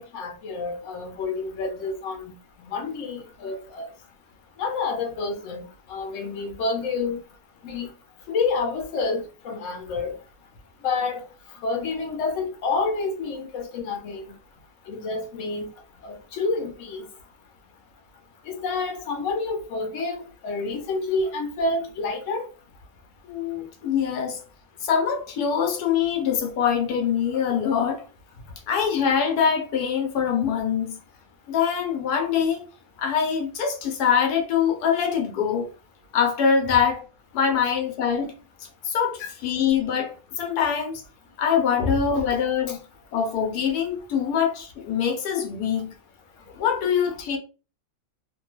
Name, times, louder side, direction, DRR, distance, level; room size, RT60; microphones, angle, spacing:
voice 1, 0.0-2.3 2.6-3.9 4.6-5.6 5.9-7.2 7.6-7.9 8.3-10.1 10.8-11.2 11.6-14.3 14.9-15.7 16.0-17.1 18.5-22.4 39.2-39.3 41.8-42.3 42.7-42.8, left 3 dB, 60° left, 1.0 m, -28 dB
voice 2, 23.3-24.4 24.8-28.0 28.7-31.0 31.5-32.7 33.0-35.7 36.1-37.0 37.3-38.3 38.8-41.0 41.4-42.8 43.1-45.9 46.5-47.4, left 7 dB, 85° left, 1.2 m, -24 dB
2.9 x 2.2 x 3.0 m
omnidirectional pair, 1.7 m